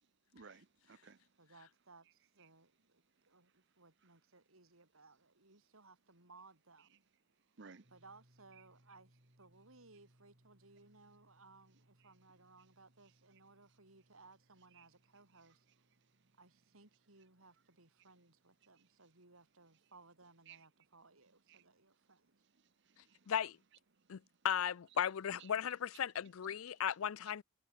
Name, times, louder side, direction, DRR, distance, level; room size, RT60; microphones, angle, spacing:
voice 1, 0.3-1.2 7.6-7.9 14.8-14.9 20.5-20.7 21.5-21.6 22.9-23.3 25.4-25.5, right 5 dB, 55° right, 0.9 m, -57 dB
voice 2, 1.4-7.1 7.9-15.6 16.4-22.4, right 3 dB, 85° right, 5.2 m, -63 dB
sound 1, 7.8-19.6, equal, 40° right, 3.7 m, -73 dB
voice 3, 23.3-23.6 24.1-27.4, left 9 dB, 80° left, 0.4 m, -36 dB
head